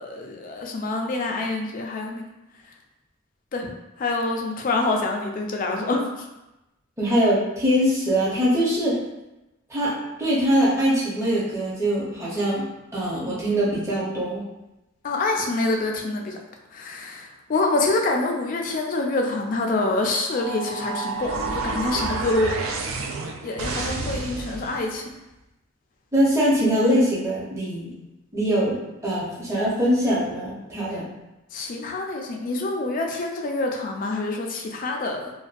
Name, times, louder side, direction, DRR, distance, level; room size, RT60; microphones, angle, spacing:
voice 1, 0.0-2.3 3.5-3.7 4.0-6.0 15.0-16.4 16.7-22.6 23.4-25.0 31.5-35.3, left 2 dB, 40° left, 2 dB, 0.3 m, -26 dB
voice 2, 7.0-9.0 9.7-12.6 12.9-14.4 26.1-27.9 28.3-28.8 29.0-31.0, equal, 15° right, -7 dB, 0.6 m, -22 dB
sound 1, 20.3-24.9, right 3 dB, 85° right, 0.3 m, -30 dB
2.5 x 2.2 x 2.4 m, 0.97 s
head